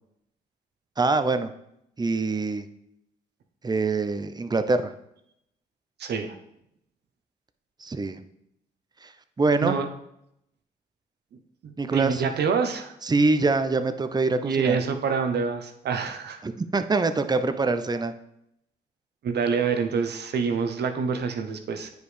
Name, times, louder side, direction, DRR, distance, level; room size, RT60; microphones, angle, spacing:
voice 1, 1.0-1.5 2.0-2.7 3.6-4.9 7.8-8.2 9.0-9.1 9.4-9.8 11.8-12.2 13.0-14.8 16.4-18.1, right 3 dB, 20° right, 10 dB, 0.7 m, -24 dB
voice 2, 6.0-6.4 9.6-9.8 11.6-12.9 14.4-16.4 19.2-21.9, right 5 dB, 60° right, 7 dB, 0.9 m, -26 dB
9.2 x 5.0 x 3.4 m, 0.78 s
hypercardioid pair, 50°, 20 cm